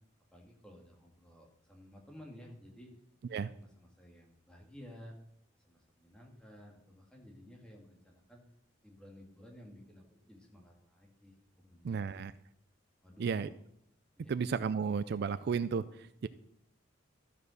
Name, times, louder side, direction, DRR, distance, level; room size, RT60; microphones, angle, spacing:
voice 1, 0.3-2.9 3.3-5.1 5.6-8.4 8.8-12.2 13.0-13.5 14.1-14.4, equal, 5° left, 0 dB, 2.0 m, -54 dB
voice 2, 11.8-12.3 13.2-13.5 14.3-16.3, right 6 dB, 55° right, 15 dB, 0.3 m, -33 dB
13.5 x 5.4 x 6.3 m, 0.73 s
head